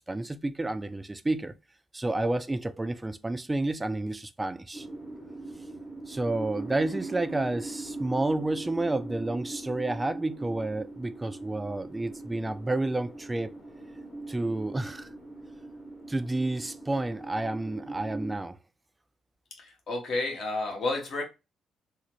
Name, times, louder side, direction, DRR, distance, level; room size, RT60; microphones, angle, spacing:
voice 1, 0.1-1.5 1.9-4.9 6.1-13.5 14.3-15.1 16.1-18.6, right 2 dB, 15° right, 0.3 m, -30 dB
sound 1, 4.7-18.4, right 2 dB, 30° left, 1.0 m, -41 dB
voice 2, 19.6-21.2, left 2 dB, 55° left, 1.1 m, -31 dB
3.8 x 2.1 x 3.0 m
cardioid pair, 90°, 0 cm